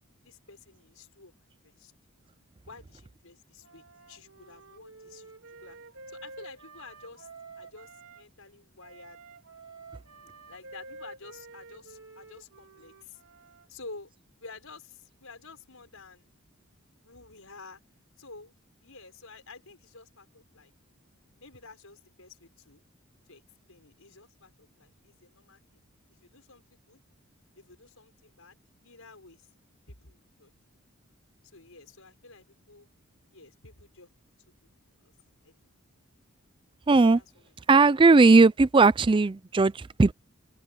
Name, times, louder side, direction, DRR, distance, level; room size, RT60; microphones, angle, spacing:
voice 1, 0.2-1.3 1.6-1.9 2.7-5.3 5.6-5.8 6.1-7.3 7.6-9.2 10.5-13.2 13.7-14.1 14.4-16.3 17.0-17.8 18.2-18.5 18.8-20.7 21.4-22.8 23.3-23.4 23.7-25.8 26.2-27.0 27.6-28.6 28.8-29.5 29.9-30.5 31.5-32.9 33.3-34.1 34.9-35.1 35.4-35.7 36.8-37.4, left 3 dB, 75° left, 6.2 m, -50 dB
Wind instrument woodwind instrument, 3.6-8.2 8.8-13.7, right 3 dB, 70° right, 3.9 m, -49 dB
voice 2, 36.9-37.2 37.7-40.1, right 3 dB, 25° right, 0.4 m, -18 dB
open air
head